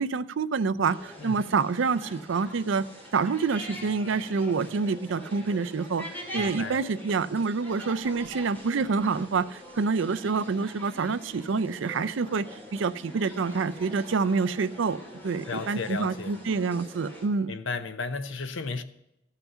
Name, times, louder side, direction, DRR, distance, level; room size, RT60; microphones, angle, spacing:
voice 1, 0.0-2.9 3.1-6.0 6.3-12.5 12.7-15.0 15.2-17.5, right 4 dB, 85° right, 0.5 m, -27 dB
sound 1, 0.8-17.3, equal, 10° left, 2.8 m, -44 dB
voice 2, 6.4-6.8 15.5-16.4 17.5-18.8, left 4 dB, 85° left, 0.8 m, -34 dB
14.0 x 5.8 x 7.0 m
head